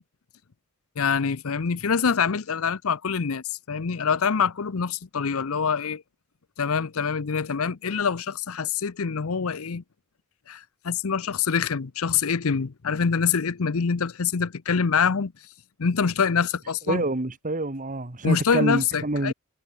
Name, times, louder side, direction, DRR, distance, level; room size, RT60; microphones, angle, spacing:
voice 1, 1.0-6.0 6.6-9.8 10.5-15.3 15.8-17.0 18.2-19.3, left 6 dB, 65° left, 0.7 m, -25 dB
voice 2, 16.9-19.3, right 2 dB, 35° right, 1.6 m, -27 dB
head